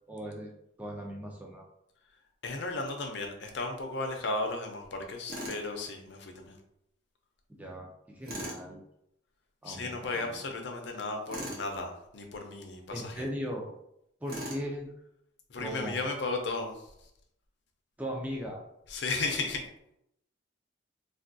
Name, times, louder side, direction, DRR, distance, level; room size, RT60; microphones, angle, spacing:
voice 1, 0.1-0.5 0.8-1.7 7.5-8.8 9.6-10.5 12.9-13.7 14.2-14.9 15.6-16.0 18.0-18.6, equal, 10° right, -1 dB, 0.4 m, -38 dB
voice 2, 2.4-6.6 9.6-13.3 15.5-16.8 18.9-19.6, left 3 dB, 65° left, 3 dB, 0.5 m, -35 dB
Tools, 5.3-5.7 8.2-8.6 11.3-11.7 14.3-14.7, equal, 50° right, 0.7 m, -38 dB
3.4 x 2.3 x 2.6 m, 0.78 s
head